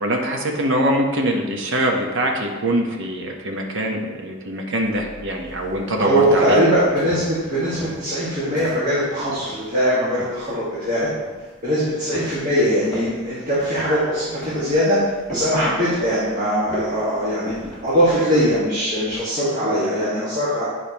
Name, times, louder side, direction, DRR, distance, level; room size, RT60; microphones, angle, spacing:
voice 1, 0.0-6.6, right 1 dB, 60° right, 1 dB, 1.0 m, -23 dB
sound 1, 4.8-19.3, left 1 dB, 5° left, 1.6 m, -40 dB
voice 2, 6.0-11.1 11.6-15.0 15.3-17.5 17.8-20.7, equal, 35° right, -10 dB, 1.7 m, -21 dB
8.6 x 4.9 x 2.9 m, 1.3 s
head